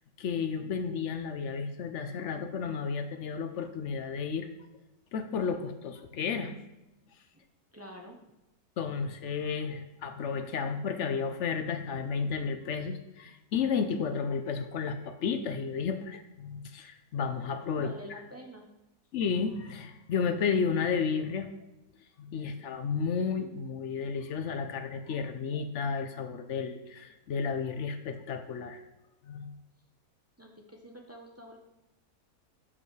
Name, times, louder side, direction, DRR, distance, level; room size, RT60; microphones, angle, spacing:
voice 1, 0.2-4.5 5.1-6.5 8.8-17.9 19.1-21.5 22.2-28.8 29.2-29.5, left 6 dB, 60° left, 8 dB, 0.8 m, -32 dB
voice 2, 7.7-8.2 17.8-18.7 30.4-31.6, equal, 20° right, 1 dB, 0.4 m, -47 dB
10.5 x 5.5 x 3.2 m, 0.95 s
omnidirectional pair, 1.7 m